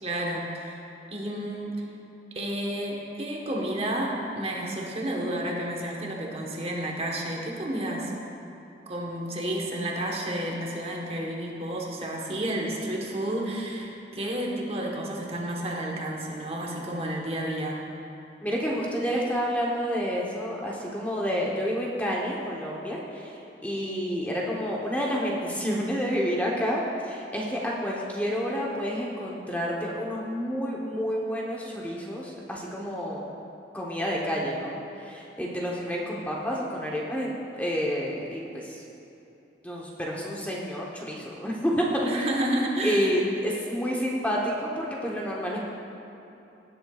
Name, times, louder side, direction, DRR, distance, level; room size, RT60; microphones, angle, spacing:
voice 1, 0.0-0.8 1.1-1.9 2.3-8.1 8.9-17.8 35.4-35.7 42.1-43.1, right 1 dB, 35° right, -1 dB, 1.1 m, -31 dB
voice 2, 18.4-33.2 33.7-38.8 39.6-41.8 42.8-45.6, equal, 10° left, -4 dB, 0.9 m, -29 dB
17.0 x 7.7 x 2.4 m, 2.9 s
head